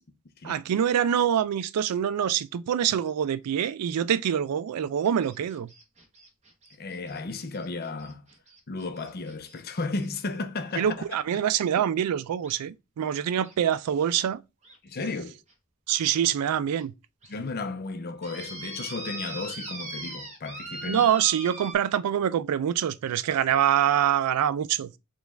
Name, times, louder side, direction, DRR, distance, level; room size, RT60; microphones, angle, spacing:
voice 1, 0.4-5.7 10.8-14.4 15.9-16.9 20.9-24.9, right 9 dB, 85° right, 0.3 m, -25 dB
sound 1, 5.0-10.1 11.3-11.4 12.4-12.6 13.4-13.5 14.0-14.1 14.6-14.8 15.5-15.6 16.1-16.2 16.8-16.9 17.2-17.3 18.2-21.7, right 2 dB, 30° right, 0.9 m, -41 dB
voice 2, 6.8-8.2 8.7-11.0 14.8-15.4 17.3-21.1, left 3 dB, 45° left, 0.6 m, -34 dB
5.0 x 2.4 x 3.4 m
head